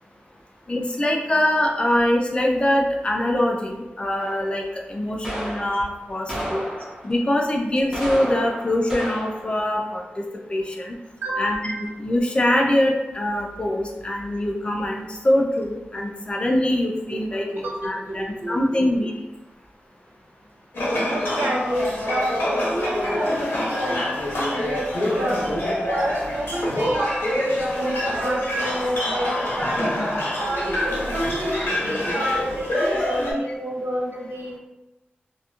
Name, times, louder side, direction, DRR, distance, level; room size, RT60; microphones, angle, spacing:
voice 1, 0.7-6.6 7.0-10.2 10.5-11.0 11.4-19.1, left 1 dB, 30° left, 0 dB, 0.4 m, -23 dB
sound 1, 4.2-4.6 5.2-5.8 6.3-7.2 7.8-9.5, equal, 10° right, 0.8 m, -32 dB
voice 2, 11.2-11.8 17.1-18.9 21.1-25.4 25.8-29.9 30.4-34.6, equal, 75° right, -2 dB, 0.6 m, -29 dB
sound 2, 20.7-33.3, left 1 dB, 80° left, 0.8 m, -25 dB
2.9 x 2.5 x 2.3 m, 1.0 s
wide cardioid pair, 115°, 4 cm